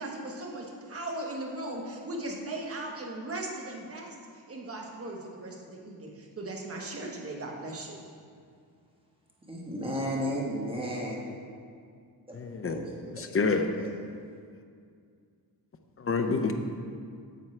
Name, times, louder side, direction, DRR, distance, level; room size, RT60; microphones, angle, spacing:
voice 1, 0.0-8.0, right 2 dB, 35° right, 0 dB, 1.3 m, -38 dB
voice 2, 9.5-11.2 12.6-12.8 13.8-13.9, equal, 15° right, -4 dB, 1.4 m, -32 dB
voice 3, 12.3-12.8 13.1-13.9 16.0-16.5, left 4 dB, 35° left, 6 dB, 0.6 m, -28 dB
9.2 x 7.1 x 3.3 m, 2.2 s
cardioid pair, 110°, 41 cm